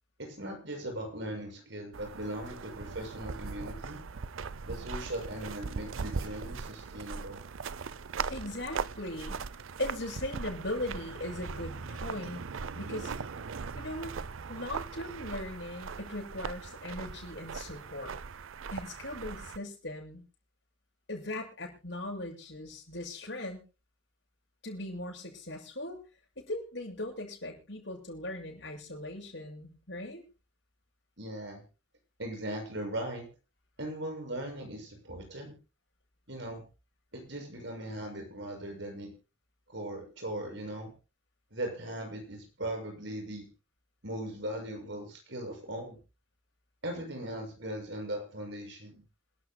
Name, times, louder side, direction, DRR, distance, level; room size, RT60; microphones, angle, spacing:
voice 1, 0.2-4.0 4.7-7.4 31.2-31.6 32.2-33.3 33.8-35.5 36.3-36.6 37.1-39.1 39.7-40.9 41.5-43.5 44.0-46.0 46.8-49.0, right 1 dB, 65° right, 3 dB, 6.6 m, -39 dB
sound 1, 1.9-19.6, right 5 dB, 90° right, 0.6 m, -39 dB
voice 2, 8.3-9.4 9.8-12.4 12.7-13.1 13.7-14.2 14.5-18.2 18.7-20.2 21.1-23.6 24.6-26.0 26.4-30.2, left 1 dB, 60° left, -1 dB, 7.2 m, -39 dB
27.5 x 12.0 x 2.2 m, 0.32 s
head